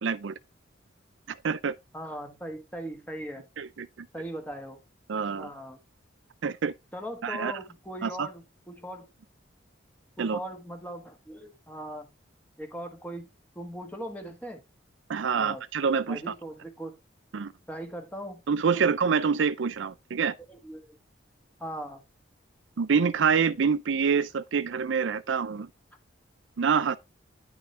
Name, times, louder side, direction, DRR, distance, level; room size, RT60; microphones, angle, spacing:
voice 1, 0.0-0.4 1.3-1.7 3.6-4.1 5.1-5.5 6.4-6.7 7.2-7.5 8.0-8.3 10.2-10.4 15.1-16.3 17.3-17.5 18.5-20.3 22.8-25.7 26.6-27.0, right 6 dB, 70° right, 0.5 m, -26 dB
voice 2, 1.9-3.5 4.1-4.8 5.4-5.8 6.9-9.1 10.2-12.1 12.6-13.3 13.5-14.6 15.3-15.6 16.1-17.0 17.7-18.4 18.7-18.8 20.5-21.0 21.6-22.0, right 1 dB, 10° left, 1.5 m, -39 dB
10.0 x 6.1 x 3.3 m
head